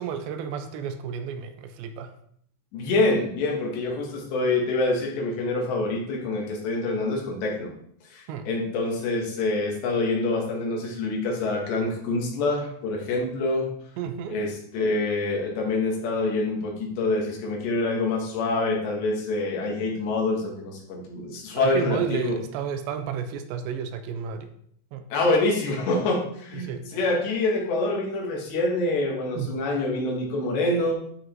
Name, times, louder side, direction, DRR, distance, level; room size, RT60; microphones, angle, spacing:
voice 1, 0.0-2.1 8.3-8.5 14.0-14.4 21.6-24.5 24.9-25.0 26.5-26.9 29.4-29.5, right 7 dB, 80° right, 8 dB, 2.9 m, -32 dB
voice 2, 2.7-7.7 8.0-13.7 14.3-22.3 25.1-30.9, left 2 dB, 70° left, -1 dB, 4.0 m, -26 dB
12.5 x 5.0 x 4.6 m, 0.66 s
omnidirectional pair, 5.2 m